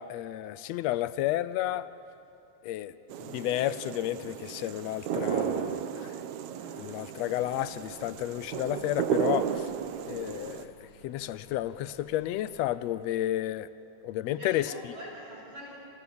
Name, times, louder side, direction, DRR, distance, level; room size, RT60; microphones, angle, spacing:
voice 1, 0.0-1.9 2.6-2.9 3.2-6.1 6.8-9.7 10.1-10.7 11.0-13.7 14.0-14.7, left 13 dB, 75° left, 15 dB, 1.7 m, -31 dB
sound 1, 3.1-10.7, right 9 dB, 75° right, 2.3 m, -34 dB
voice 2, 6.5-6.9 7.3-7.4 14.3-15.7, equal, 40° right, -7 dB, 7.9 m, -45 dB
sound 2, 7.3-12.7, equal, 45° left, 5.6 m, -57 dB
29.0 x 28.0 x 7.0 m, 2.6 s
omnidirectional pair, 3.6 m